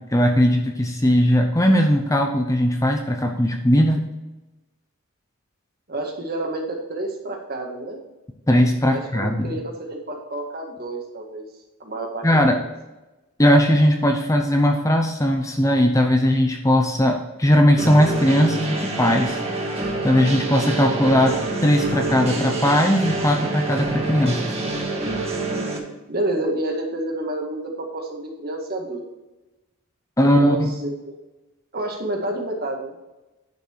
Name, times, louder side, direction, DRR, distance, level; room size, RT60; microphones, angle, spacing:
voice 1, 0.0-4.0 8.5-9.5 12.2-12.6 13.4-19.4 19.7-21.4 21.6-24.5 30.2-30.7, equal, 15° left, 3 dB, 0.7 m, -18 dB
voice 2, 5.9-8.0 8.8-11.4 11.8-12.6 26.1-29.0 30.2-31.2 31.7-32.9, right 1 dB, 45° right, 1 dB, 1.8 m, -29 dB
sound 1, 17.8-25.8, right 2 dB, 30° right, 1.7 m, -27 dB
10.5 x 5.9 x 4.6 m, 1.0 s
head